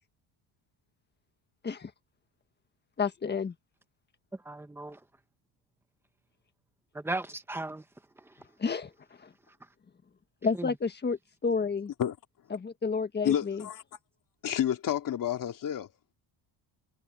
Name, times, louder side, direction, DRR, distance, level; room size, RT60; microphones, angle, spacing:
voice 1, 3.0-3.5 8.6-9.3 10.4-11.9 12.5-13.7, left 5 dB, 20° left, 1.5 m, -31 dB
voice 2, 4.4-5.0 6.9-7.8 10.6-10.7, right 2 dB, 5° right, 1.5 m, -36 dB
voice 3, 13.2-13.8 14.4-15.9, left 10 dB, 45° left, 2.7 m, -29 dB
cardioid pair, 150°, 46 cm